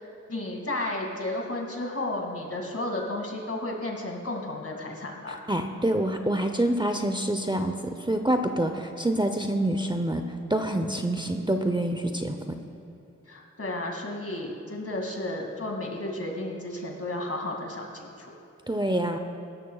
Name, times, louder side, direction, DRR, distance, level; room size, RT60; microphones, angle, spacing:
voice 1, 0.3-5.4 13.3-18.3, left 1 dB, 50° left, 0 dB, 2.4 m, -33 dB
voice 2, 5.5-10.2 10.5-12.4 18.7-19.2, right 1 dB, 15° right, 6 dB, 0.7 m, -26 dB
16.5 x 12.5 x 2.4 m, 2.9 s
cardioid pair, 50°, 30 cm